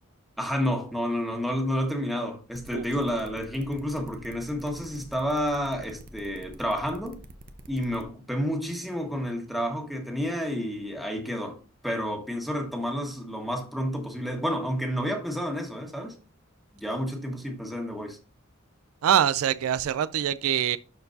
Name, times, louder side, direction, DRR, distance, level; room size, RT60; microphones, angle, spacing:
voice 1, 0.4-7.2 7.7-16.2 16.7-18.2, equal, ahead, 1.5 m, -30 dB
sound 1, 2.5-8.0, right 1 dB, 40° right, 0.8 m, -47 dB
voice 2, 19.0-20.8, right 9 dB, 80° right, 0.4 m, -24 dB
12.0 x 4.5 x 2.7 m
head